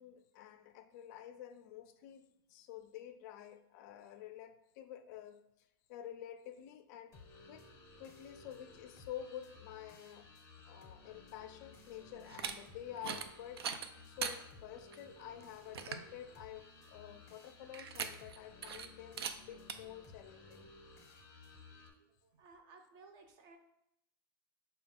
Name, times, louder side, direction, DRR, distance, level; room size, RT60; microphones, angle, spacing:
voice 1, 0.0-5.4 5.9-7.2 7.5-7.7 8.0-10.3 10.6-20.7, left 11 dB, 45° left, 10 dB, 0.4 m, -50 dB
Guitar Dubstep Loop, 7.1-21.9, left 3 dB, 25° left, 0.7 m, -57 dB
sound 1, 12.2-12.5 13.0-13.3 13.6-14.4 14.9-15.0 15.4-15.5 15.7-16.1 17.7-18.4 18.6-18.9 19.2-19.3 19.7-19.8, right 7 dB, 90° right, 0.4 m, -40 dB
voice 2, 22.2-23.6, right 4 dB, 35° right, 5 dB, 0.6 m, -59 dB
4.7 x 2.3 x 3.6 m, 0.83 s
supercardioid pair, 145°, 13 cm